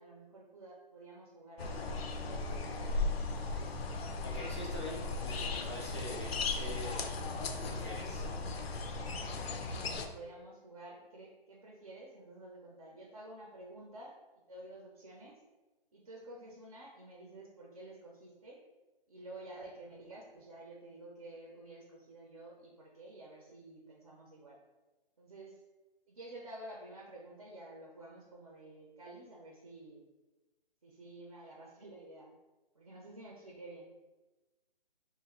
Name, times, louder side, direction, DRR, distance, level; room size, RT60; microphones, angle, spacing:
voice 1, 0.0-3.1 8.9-14.1 14.5-15.4 15.9-18.6 19.1-24.6 25.2-25.6 26.1-30.0 30.8-32.3 32.7-33.9, right 1 dB, 35° right, -2 dB, 0.4 m, -51 dB
sound 1, 1.6-10.1, left 3 dB, 90° left, 0.5 m, -37 dB
voice 2, 4.2-7.1 7.6-8.3, left 2 dB, 30° left, -4 dB, 0.4 m, -44 dB
2.8 x 2.4 x 2.8 m, 1.1 s
hypercardioid pair, 155°, 30 cm